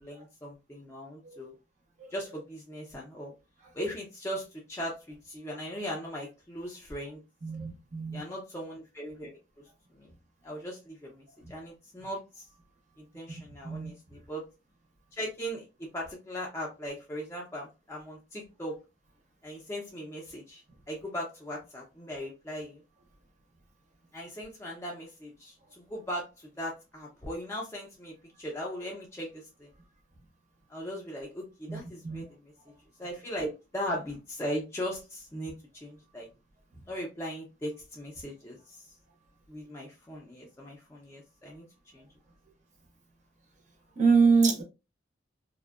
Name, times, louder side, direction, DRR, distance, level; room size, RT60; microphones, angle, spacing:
voice 1, 0.0-1.5 2.1-3.3 3.7-4.4 4.7-7.2 8.1-9.4 10.4-11.1 11.5-12.2 13.1-13.9 14.3-14.4 15.2-15.6 15.9-18.7 19.4-20.6 20.9-22.8 24.1-25.5 25.9-26.2 26.6-28.1 28.4-29.3 30.7-31.4 31.7-32.2 33.0-35.5 35.8-36.3 36.9-37.7 38.0-38.6 39.5-41.6, equal, 15° left, 0.4 m, -38 dB
voice 2, 7.4-8.2 13.6-13.9 31.7-32.2 44.0-44.6, right 5 dB, 40° right, 0.6 m, -25 dB
2.5 x 2.1 x 2.3 m
head